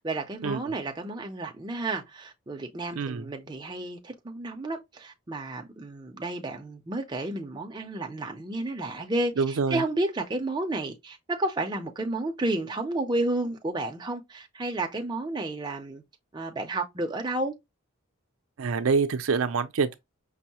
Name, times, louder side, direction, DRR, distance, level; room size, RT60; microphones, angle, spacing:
voice 1, 0.0-16.0 16.3-17.5, right 2 dB, 20° right, 0.5 m, -31 dB
voice 2, 3.0-3.3 9.4-9.8 18.6-19.9, right 5 dB, 75° right, 0.4 m, -26 dB
5.3 x 2.0 x 2.8 m
head